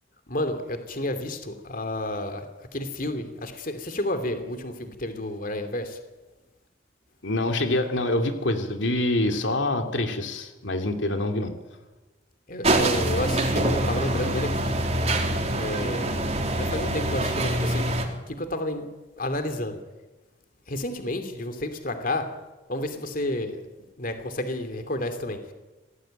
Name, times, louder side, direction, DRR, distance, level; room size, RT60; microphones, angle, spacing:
voice 1, 0.3-6.0 12.5-15.1 15.5-16.2 16.5-17.9 18.3-18.9 19.2-19.8 20.7-22.3 22.7-23.6 24.0-25.5, left 1 dB, 45° left, 8 dB, 2.8 m, -31 dB
voice 2, 7.2-11.5, left 1 dB, 75° left, 5 dB, 2.7 m, -25 dB
sound 1, 12.6-18.0, right 1 dB, 35° right, 3.9 m, -25 dB
26.5 x 18.5 x 9.1 m, 1.1 s
head